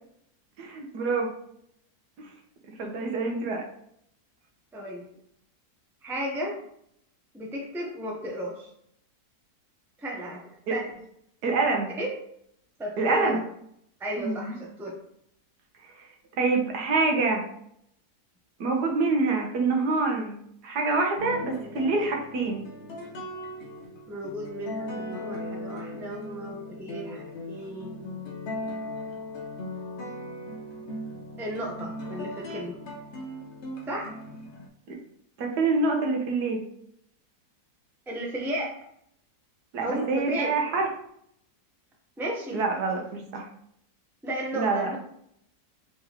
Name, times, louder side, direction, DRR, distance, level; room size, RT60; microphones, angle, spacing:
voice 1, 0.6-1.3 2.2-2.3 2.8-3.7 10.7-10.8 11.4-11.9 13.0-13.4 14.2-14.5 16.4-17.4 18.6-20.4 20.6-22.6 34.9-35.0 35.4-36.6 39.7-40.9 42.5-43.5 44.5-45.0, right 3 dB, 80° right, 2 dB, 1.4 m, -26 dB
voice 2, 4.7-5.1 6.0-6.6 7.3-8.7 10.0-10.4 10.7-10.9 12.0-12.1 12.8-13.4 14.0-14.9 24.1-28.0 31.4-32.8 33.9-34.1 38.1-38.7 39.8-40.5 42.2-42.6 44.2-45.0, right 1 dB, ahead, -2 dB, 0.5 m, -34 dB
sound 1, 21.2-34.7, left 1 dB, 55° left, 0.9 m, -38 dB
4.4 x 3.6 x 2.9 m, 0.70 s
omnidirectional pair, 1.7 m